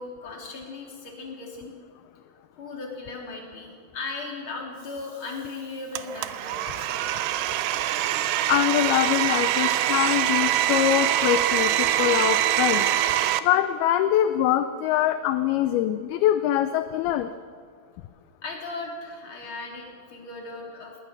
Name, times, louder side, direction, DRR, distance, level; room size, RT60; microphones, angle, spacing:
voice 1, 0.0-1.7 2.6-7.3 18.4-21.0, left 3 dB, 30° left, -1 dB, 3.9 m, -37 dB
Domestic sounds home sounds, 6.0-13.4, right 12 dB, 90° right, 2.9 m, -24 dB
voice 2, 8.5-12.9 13.4-17.3, left 12 dB, 80° left, 10 dB, 2.4 m, -23 dB
20.5 x 20.0 x 6.7 m, 2.1 s
omnidirectional pair, 4.8 m